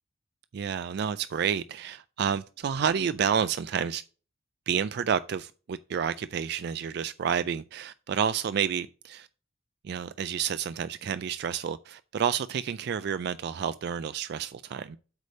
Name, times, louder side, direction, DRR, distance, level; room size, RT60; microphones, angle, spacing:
voice 1, 0.5-4.0 4.7-9.3 9.8-15.0, right 7 dB, 55° right, 0.3 m, -30 dB
8.2 x 3.3 x 6.4 m
head